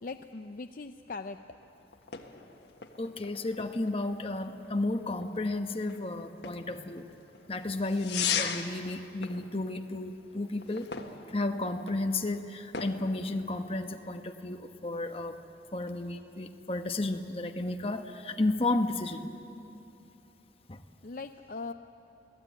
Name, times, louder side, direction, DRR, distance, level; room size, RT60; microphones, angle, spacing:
voice 1, 0.0-1.4 21.0-21.7, left 3 dB, 50° left, 7 dB, 0.5 m, -40 dB
sound 1, 1.5-14.1, left 7 dB, 75° left, 1.6 m, -40 dB
voice 2, 3.0-7.1 7.5-10.9 11.3-15.4 15.7-19.3 20.7-20.8, left 2 dB, 35° left, 6 dB, 1.1 m, -32 dB
25.5 x 17.5 x 9.2 m, 2.9 s
head